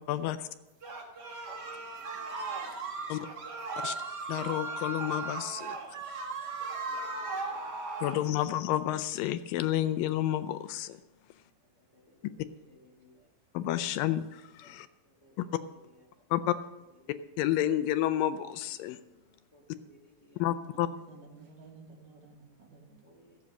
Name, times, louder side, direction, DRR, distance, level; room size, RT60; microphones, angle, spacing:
voice 1, 0.1-0.5 3.1-3.2 3.8-4.0 4.3-5.8 8.0-11.0 13.5-14.9 15.4-15.5 16.3-16.6 17.4-19.0 20.4-20.9, left 12 dB, 80° left, 12 dB, 2.3 m, -30 dB
sound 1, 0.8-8.2, right 3 dB, 40° right, 1.6 m, -37 dB
voice 2, 1.5-3.2 6.5-8.2 11.8-13.3 14.6-14.7 15.0-16.2 16.9-17.1 19.5-20.4 20.8-20.9 23.0-23.4, left 1 dB, 35° left, -1 dB, 1.8 m, -62 dB
voice 3, 20.7-23.0, right 4 dB, 65° right, -2 dB, 4.1 m, -53 dB
14.5 x 8.2 x 6.4 m, 1.0 s
omnidirectional pair, 4.0 m